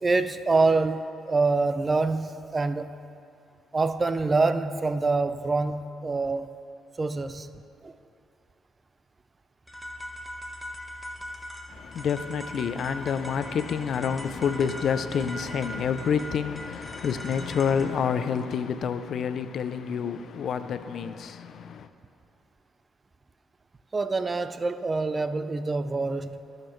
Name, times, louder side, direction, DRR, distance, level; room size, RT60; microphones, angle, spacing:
voice 1, 0.0-2.9 3.7-6.5 7.0-7.5 7.8-7.9 23.9-26.4, right 3 dB, 30° right, 11 dB, 0.4 m, -25 dB
sound 1, 9.7-17.9, equal, 5° left, 1.3 m, -40 dB
voice 2, 11.7-21.9, left 7 dB, 65° left, 11 dB, 0.4 m, -28 dB
19.0 x 6.6 x 3.2 m, 2.6 s
cardioid pair, 90°, 0 cm